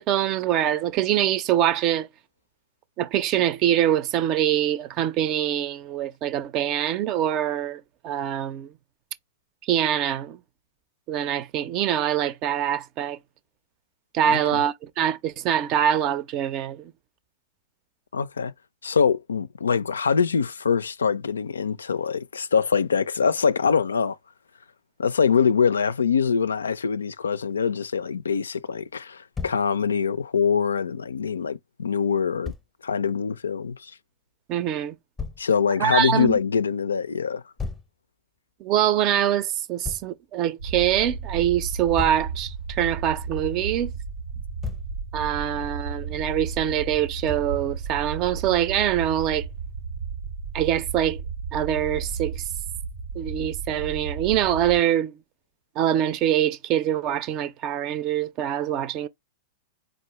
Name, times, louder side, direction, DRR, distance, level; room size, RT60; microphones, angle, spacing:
voice 1, 0.0-2.1 3.0-8.7 9.6-10.4 11.1-13.2 14.1-16.9 34.5-35.0 35.8-36.4 38.6-43.9 45.1-49.5 50.5-51.2 51.5-52.4 53.2-55.2 55.8-59.1, right 10 dB, 40° right, 0.5 m, -24 dB
voice 2, 14.2-14.6 18.1-18.5 18.8-24.2 25.0-32.5 32.8-33.9 35.4-37.4, left 6 dB, 80° left, 0.3 m, -24 dB
Thump thud, 29.3-29.7 32.4-32.7 35.2-35.5 37.6-37.9 39.8-40.1 42.0-42.3 44.3-44.9 47.3-47.6, left 5 dB, 10° left, 0.7 m, -34 dB
sound 1, 40.6-54.8, right 5 dB, 85° right, 1.1 m, -33 dB
4.6 x 2.5 x 2.9 m
figure-of-eight pair, 100°, 0 cm